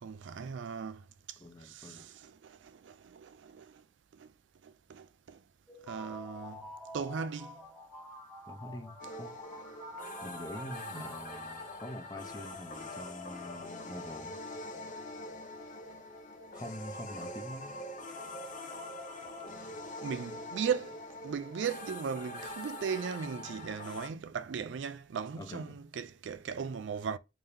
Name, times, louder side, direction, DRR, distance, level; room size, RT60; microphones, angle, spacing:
voice 1, 0.0-1.0 1.6-3.8 4.2-4.3 4.6-5.4 5.9-6.6 6.9-7.6 10.9-11.0 20.0-27.2, right 6 dB, 70° right, 0.4 m, -38 dB
voice 2, 1.4-2.1 8.5-9.4 10.2-14.4 16.5-17.8 25.4-25.7, left 1 dB, 20° left, 0.9 m, -45 dB
sound 1, 5.7-12.5, left 1 dB, 5° right, 1.0 m, -48 dB
sound 2, 9.0-24.1, left 1 dB, 45° left, 0.7 m, -44 dB
3.7 x 2.8 x 3.3 m
head